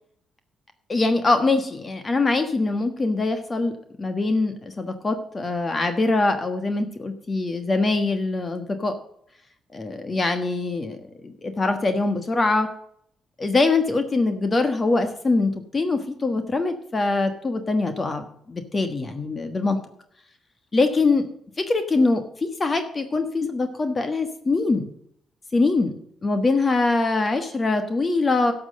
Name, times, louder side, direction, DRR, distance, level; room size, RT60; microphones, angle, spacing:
voice 1, 0.9-9.0 9.7-11.0 11.2-12.7 13.4-19.8 20.7-21.3 21.6-24.9 25.5-26.0 26.2-28.5, left 3 dB, 30° left, 8 dB, 1.4 m, -23 dB
12.0 x 6.3 x 7.7 m, 0.69 s
cardioid pair, 90°, 0 cm